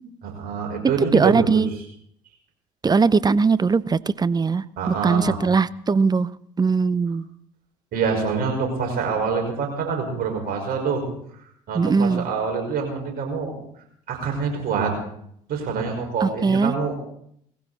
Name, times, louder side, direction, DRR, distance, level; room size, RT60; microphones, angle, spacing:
voice 1, 0.2-1.6 4.8-5.4 7.9-11.0 11.7-13.5 14.1-14.9 15.5-16.9, right 5 dB, 55° right, 2 dB, 5.5 m, -26 dB
voice 2, 1.1-1.7 2.8-6.3 6.6-7.3 11.7-12.3 16.2-16.7, right 4 dB, 20° right, 19 dB, 0.6 m, -20 dB
19.5 x 15.5 x 4.2 m, 0.69 s
hypercardioid pair, 65°, 18 cm